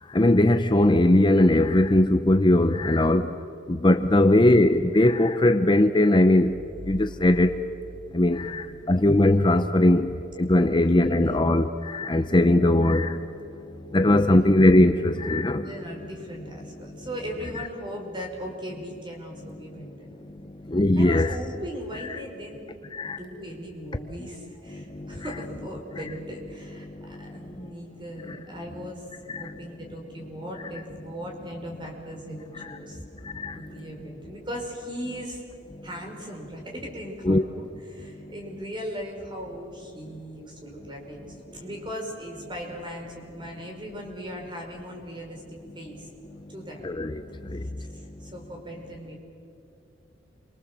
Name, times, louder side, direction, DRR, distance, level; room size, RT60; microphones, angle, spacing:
voice 1, 0.1-3.3 3.7-6.6 6.9-7.6 8.1-15.7 16.8-17.1 17.5-17.6 19.7-19.9 20.2-21.4 22.9-23.2 24.7-25.2 26.0-26.1 26.8-27.7 28.3-28.4 29.3-29.6 32.6-33.8 35.7-35.9 37.2-37.4 38.1-38.3 46.3-46.5 46.8-48.3, left 1 dB, 25° left, 0.7 m, -21 dB
sound 1, 6.5-9.3, equal, 80° right, 1.5 m, -43 dB
voice 2, 8.5-9.0 10.7-11.6 14.3-14.4 15.6-20.5 21.0-22.6 23.0-33.0 33.5-35.4 35.8-46.1 46.5-46.9 47.8-49.2, equal, 25° right, 5.1 m, -38 dB
28.5 x 24.5 x 7.5 m
head